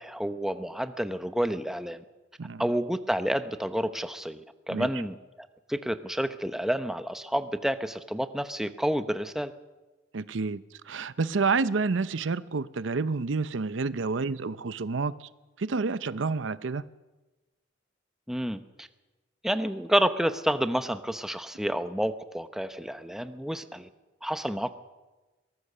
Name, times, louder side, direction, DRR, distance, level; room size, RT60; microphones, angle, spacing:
voice 1, 0.0-2.0 2.6-9.5 18.3-18.9 19.4-23.9 24.2-24.7, equal, ahead, 0.9 m, -29 dB
voice 2, 10.1-10.6 10.9-15.3 15.6-16.8, right 4 dB, 75° right, 0.7 m, -29 dB
22.5 x 18.5 x 6.8 m
head